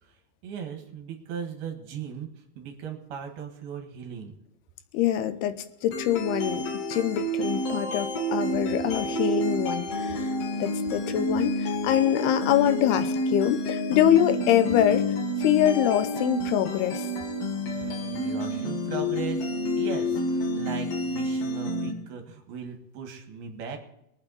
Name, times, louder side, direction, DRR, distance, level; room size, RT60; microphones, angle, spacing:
voice 1, 0.0-4.4 17.7-23.8, right 6 dB, 70° right, 4 dB, 3.6 m, -38 dB
voice 2, 4.9-5.6 5.8-10.3 10.6-15.1 15.4-17.1, left 11 dB, 80° left, 10 dB, 2.8 m, -24 dB
sound 1, 5.9-21.9, equal, 50° left, 2.2 m, -29 dB
23.0 x 8.7 x 4.1 m, 0.82 s
omnidirectional pair, 4.6 m